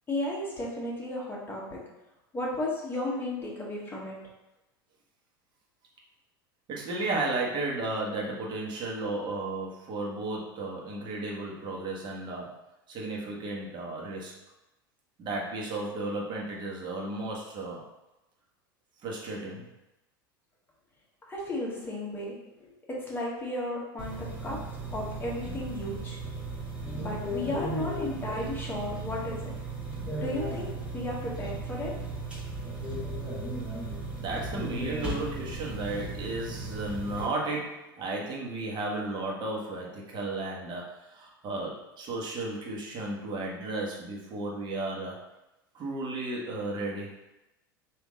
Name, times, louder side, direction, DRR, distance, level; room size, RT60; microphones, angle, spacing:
voice 1, 0.1-1.8 2.3-4.2 21.3-24.6 24.9-26.2 26.9-29.5 30.2-31.9, left 1 dB, 15° left, -5 dB, 1.5 m, -34 dB
voice 2, 6.7-12.5 12.9-14.3 15.2-17.8 19.0-19.7 34.2-45.2 45.7-47.1, right 2 dB, 40° right, -2 dB, 1.2 m, -34 dB
sound 1, 24.0-37.3, right 2 dB, 10° right, 1.4 m, -36 dB
3.5 x 2.8 x 3.6 m, 0.97 s
hypercardioid pair, 85°, 12 cm